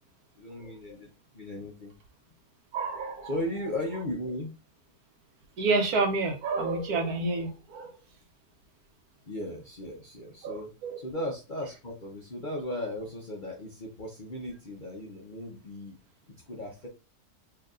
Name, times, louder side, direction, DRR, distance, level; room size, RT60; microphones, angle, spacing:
voice 1, 0.4-1.1 1.3-1.9 3.2-4.5 9.2-10.7 11.0-15.9 16.5-16.9, left 1 dB, 45° left, 0.7 m, -36 dB
voice 2, 2.7-3.3 5.6-8.0 10.4-11.0, right 3 dB, 75° right, 1.3 m, -29 dB
4.6 x 2.8 x 2.4 m
omnidirectional pair, 1.6 m